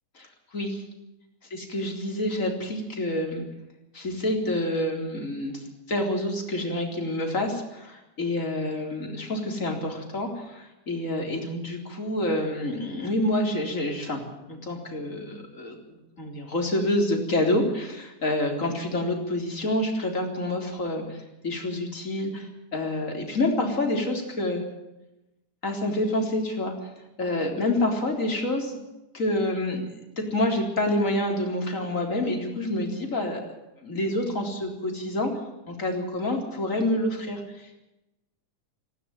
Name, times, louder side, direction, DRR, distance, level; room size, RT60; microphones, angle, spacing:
voice 1, 0.2-0.8 1.5-3.4 3.9-14.2 14.5-24.6 25.6-26.7 27.2-28.8 29.1-33.4 33.8-35.3 35.7-37.8, left 1 dB, 25° left, 2 dB, 4.1 m, -28 dB
19.0 x 16.5 x 8.9 m, 0.94 s
omnidirectional pair, 3.6 m